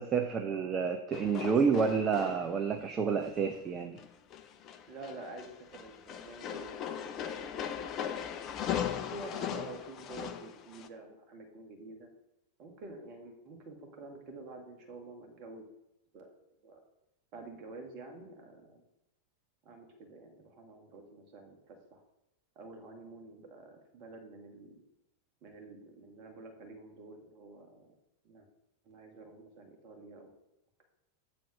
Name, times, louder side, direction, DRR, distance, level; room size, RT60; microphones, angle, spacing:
voice 1, 0.0-4.0, right 6 dB, 25° right, 5 dB, 0.6 m, -29 dB
sound 1, 1.1-2.8 3.2-3.6 4.0-10.9, left 9 dB, 35° left, 0.6 m, -38 dB
voice 2, 4.9-6.8 7.0-7.7 8.9-12.1 12.6-15.6 16.1-16.3 16.6-16.8 17.3-18.8 19.6-22.0 22.6-24.8 25.4-27.9 28.2-28.5 28.8-30.3, right 2 dB, 40° right, 3 dB, 2.0 m, -49 dB
7.6 x 4.2 x 5.9 m, 0.86 s
figure-of-eight pair, 90°, 0 cm